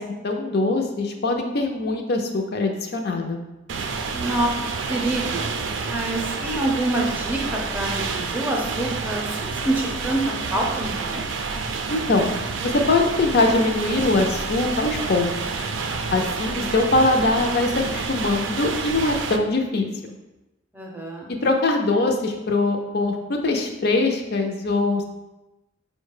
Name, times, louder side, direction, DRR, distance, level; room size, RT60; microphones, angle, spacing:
voice 1, 0.0-3.4 11.9-12.3 12.6-15.3 15.6-15.7 16.1-19.9 21.4-25.0, left 2 dB, 55° left, 3 dB, 0.5 m, -22 dB
sound 1, 3.7-19.4, right 4 dB, 75° right, 0.4 m, -29 dB
voice 2, 4.1-4.5 4.9-5.5 5.9-11.2 20.7-21.3, right 1 dB, 10° right, -1 dB, 0.6 m, -26 dB
4.9 x 2.2 x 4.8 m, 1.0 s
head